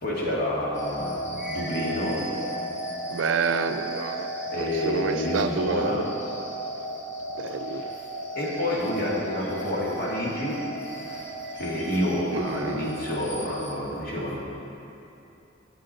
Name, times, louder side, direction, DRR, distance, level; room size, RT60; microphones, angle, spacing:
voice 1, 0.0-2.4 4.5-6.3 7.6-8.0 8.4-14.4, left 1 dB, 50° left, -5 dB, 2.2 m, -29 dB
sound 1, 0.7-13.7, right 1 dB, 80° left, 1.9 m, -35 dB
sound 2, 1.0-5.6 8.4-12.4, equal, 5° right, 0.5 m, -45 dB
voice 2, 3.1-4.3 4.6-6.0 7.4-7.9 12.3-12.9, right 5 dB, 80° right, 9 dB, 0.4 m, -29 dB
10.0 x 8.9 x 4.3 m, 2.8 s
head